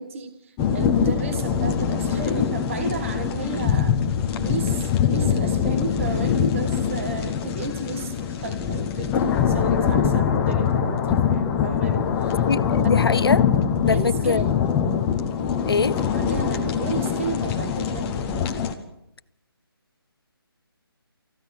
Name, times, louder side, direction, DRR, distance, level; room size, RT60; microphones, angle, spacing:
voice 1, 0.0-4.0 4.4-12.4 13.8-14.5 15.9-18.2, right 5 dB, 30° right, 8 dB, 1.6 m, -33 dB
sound 1, 0.6-18.7, left 7 dB, 10° left, 0.9 m, -23 dB
voice 2, 12.5-13.4 13.9-14.7 15.7-15.9, left 4 dB, 70° left, 19 dB, 0.8 m, -23 dB
29.0 x 15.0 x 5.9 m, 0.82 s
figure-of-eight pair, 165°, 13 cm